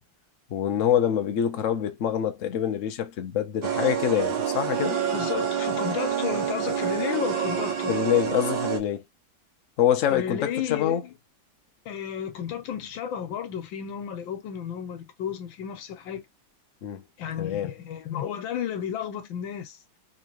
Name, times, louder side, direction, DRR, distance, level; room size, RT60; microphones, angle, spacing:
voice 1, 0.5-5.0 7.9-9.0 9.8-11.0 16.8-17.0 17.4-17.7, left 10 dB, 60° left, 0.9 m, -25 dB
sound 1, 3.6-8.8, right 8 dB, 85° right, 1.7 m, -27 dB
voice 2, 5.1-7.9 10.1-11.1 11.8-16.2 17.2-19.8, left 9 dB, 85° left, 1.6 m, -32 dB
3.7 x 3.2 x 2.9 m
omnidirectional pair, 2.1 m